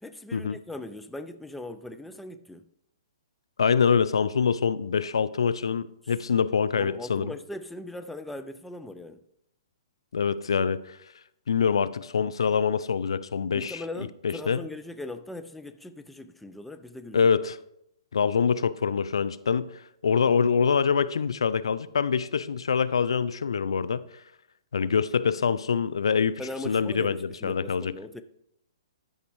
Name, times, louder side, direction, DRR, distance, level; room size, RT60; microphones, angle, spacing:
voice 1, 0.0-2.6 6.0-6.1 6.8-9.2 13.5-17.3 26.4-28.2, left 2 dB, 5° left, 0.4 m, -39 dB
voice 2, 3.6-7.3 10.1-11.0 11.5-13.8 14.2-14.6 17.1-17.6 18.1-24.0 24.7-27.9, left 6 dB, 80° left, 0.4 m, -25 dB
12.5 x 5.2 x 3.1 m
hypercardioid pair, 130°, 3 cm